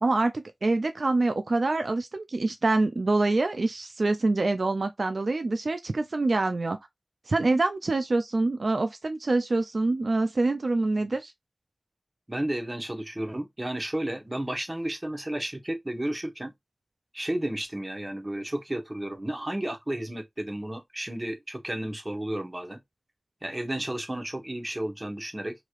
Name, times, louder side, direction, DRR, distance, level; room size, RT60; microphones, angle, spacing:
voice 1, 0.0-6.8 7.3-11.3, right 2 dB, 80° right, 0.3 m, -25 dB
voice 2, 12.3-16.5 17.1-22.8 23.4-25.5, right 1 dB, 30° right, 0.9 m, -32 dB
3.0 x 2.9 x 2.4 m
wide cardioid pair, 50°, 0 cm